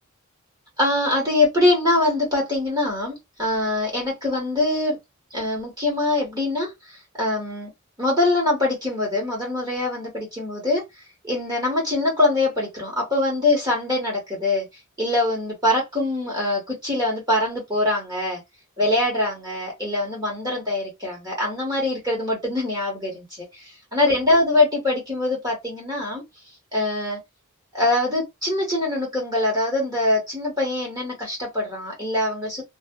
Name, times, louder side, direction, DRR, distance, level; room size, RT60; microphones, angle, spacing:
voice 1, 0.8-5.0 5.3-7.7 8.0-10.8 11.2-14.7 15.0-18.4 18.8-23.4 23.9-26.2 26.7-27.2 27.7-32.6, left 2 dB, 20° right, 1.3 m, -23 dB
2.5 x 2.5 x 2.2 m
head